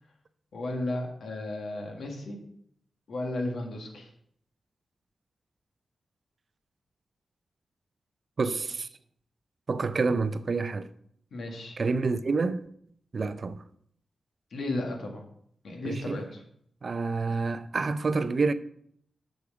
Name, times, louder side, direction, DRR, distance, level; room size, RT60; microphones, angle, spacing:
voice 1, 0.5-2.4 3.1-4.1 11.3-11.8 14.5-15.2 15.6-16.4, left 2 dB, 80° left, 1.7 m, -34 dB
voice 2, 8.4-8.9 9.7-10.9 11.8-12.7 13.1-13.6 15.8-16.2 16.8-18.5, right 4 dB, 45° right, 0.4 m, -28 dB
6.9 x 6.3 x 4.8 m
wide cardioid pair, 150°, 0 cm